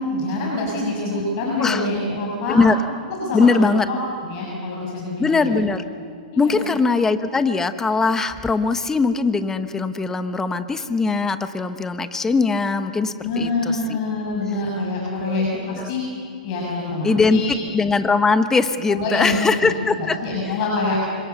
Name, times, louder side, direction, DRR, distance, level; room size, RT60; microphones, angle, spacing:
voice 1, 0.0-2.6 3.2-4.0 4.2-5.6 6.3-6.7 13.2-16.0 16.4-17.6 18.9-19.7 20.0-21.0, left 2 dB, 45° left, -3 dB, 6.8 m, -25 dB
voice 2, 3.3-3.9 5.2-5.8 6.4-14.0 15.2-15.4 15.8-15.9 17.0-20.2 20.5-20.6, left 4 dB, 10° left, 10 dB, 1.0 m, -20 dB
28.5 x 26.0 x 7.0 m, 2.2 s
hypercardioid pair, 140°, 5 cm